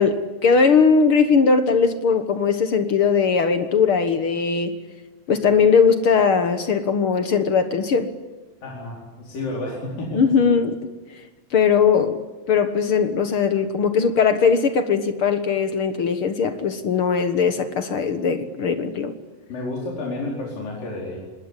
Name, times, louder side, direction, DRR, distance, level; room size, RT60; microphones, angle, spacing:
voice 1, 0.0-4.7 5.3-8.1 10.1-10.9 11.5-12.2 12.5-19.1, left 5 dB, 55° left, 9 dB, 1.7 m, -19 dB
voice 2, 8.6-10.2 19.5-21.2, left 2 dB, 80° left, -3 dB, 6.4 m, -30 dB
25.5 x 21.0 x 9.8 m, 1.2 s
omnidirectional pair, 3.9 m